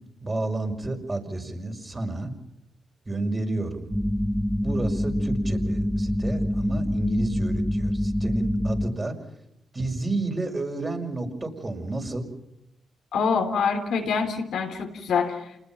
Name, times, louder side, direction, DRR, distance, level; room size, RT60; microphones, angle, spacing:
voice 1, 0.2-2.3 3.1-3.9 4.6-9.1 9.7-12.3, right 2 dB, 30° right, 3 dB, 5.6 m, -30 dB
sound 1, 3.9-8.9, equal, ahead, 0.8 m, -26 dB
voice 2, 13.1-15.5, left 5 dB, 80° left, 4 dB, 3.3 m, -25 dB
28.0 x 20.5 x 5.8 m, 0.84 s
supercardioid pair, 50°, 0 cm